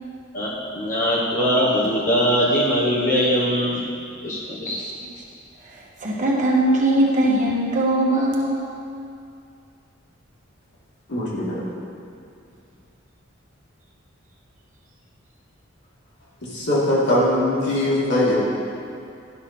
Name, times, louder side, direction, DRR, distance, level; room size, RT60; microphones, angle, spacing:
voice 1, 0.3-3.8 4.2-4.8, equal, 40° left, -6 dB, 1.0 m, -21 dB
voice 2, 5.6-8.6, right 1 dB, 40° right, -4 dB, 1.4 m, -21 dB
voice 3, 11.1-11.6 16.4-18.4, left 1 dB, 60° left, -7 dB, 2.3 m, -21 dB
11.5 x 5.9 x 4.3 m, 2.5 s
head